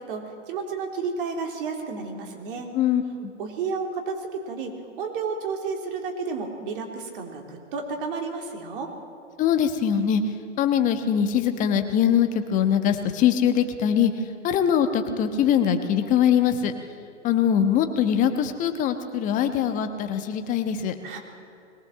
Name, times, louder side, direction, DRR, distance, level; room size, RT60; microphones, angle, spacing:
voice 1, 0.0-2.7 3.4-8.9 21.0-21.2, right 5 dB, 45° right, 3 dB, 3.5 m, -32 dB
voice 2, 2.7-3.3 9.4-10.2 10.6-14.1 14.4-16.7 17.2-20.9, left 9 dB, 20° left, 8 dB, 1.3 m, -22 dB
21.5 x 18.5 x 7.6 m, 2.6 s
hypercardioid pair, 135°, 37 cm